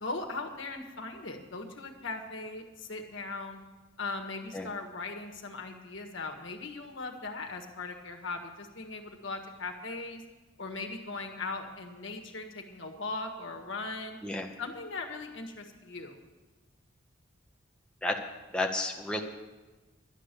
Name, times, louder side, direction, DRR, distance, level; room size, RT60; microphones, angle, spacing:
voice 1, 0.0-3.6 4.0-10.2 10.6-14.2 14.6-16.2, left 3 dB, 75° left, 4 dB, 1.5 m, -39 dB
voice 2, 18.5-19.2, left 2 dB, 5° left, 1 dB, 0.7 m, -31 dB
11.5 x 9.8 x 6.8 m, 1.2 s
head